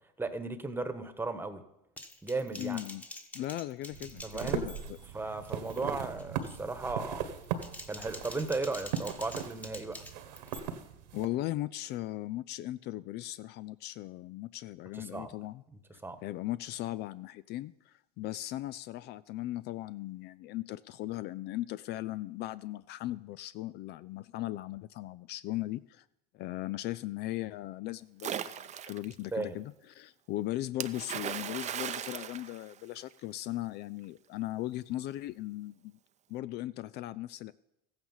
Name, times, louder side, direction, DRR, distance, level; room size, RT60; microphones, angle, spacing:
voice 1, 0.2-1.6 2.2-2.8 4.2-4.6 5.1-7.3 7.9-10.0 14.9-15.3 16.0-16.2 29.3-29.6, right 3 dB, 10° right, 9 dB, 1.3 m, -36 dB
Typing, 2.0-5.1 5.4-5.8 6.2-6.6 7.4-10.6, left 1 dB, 5° left, 1.4 m, -47 dB
voice 2, 2.6-3.0 3.3-5.0 11.1-15.6 16.2-26.0 26.3-36.0 36.3-37.5, left 15 dB, 55° left, 17 dB, 0.4 m, -38 dB
sound 1, 3.9-11.3, right 8 dB, 85° right, 1.7 m, -39 dB
Splash splatter, 28.2-29.1 30.8-33.2, right 9 dB, 35° right, 0.7 m, -38 dB
14.5 x 8.9 x 5.7 m, 0.83 s
supercardioid pair, 105°, 21 cm